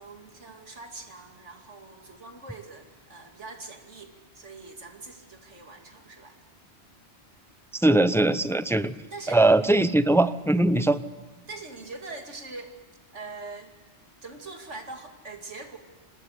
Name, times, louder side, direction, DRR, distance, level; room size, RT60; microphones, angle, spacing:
voice 1, 0.0-6.4 8.6-8.8 9.1-9.4 11.5-12.8 13.1-13.7 14.2-15.8, right 3 dB, 80° right, 3 dB, 3.0 m, -43 dB
voice 2, 7.7-8.9 9.3-11.0, right 2 dB, 5° left, 12 dB, 0.5 m, -21 dB
25.5 x 20.0 x 8.2 m, 1.2 s
omnidirectional pair, 1.2 m